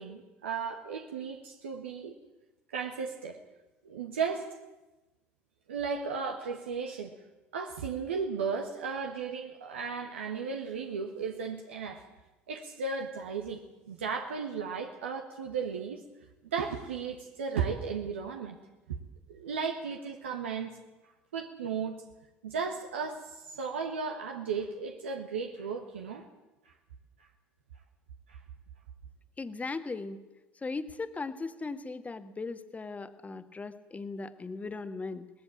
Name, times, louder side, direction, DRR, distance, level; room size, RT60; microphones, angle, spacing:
voice 1, 0.0-2.2 2.7-3.4 3.8-4.5 5.7-7.1 7.5-12.0 12.5-13.6 13.9-16.0 16.5-18.6 18.9-19.0 19.3-20.7 21.3-22.0 22.4-26.3 26.6-26.7 27.2-27.3 28.3-28.4, right 5 dB, 90° right, 3 dB, 1.4 m, -35 dB
voice 2, 29.4-30.2 30.5-35.3, left 3 dB, 25° left, 10 dB, 1.6 m, -38 dB
18.5 x 15.0 x 9.9 m, 1.1 s
hypercardioid pair, 65°, 6 cm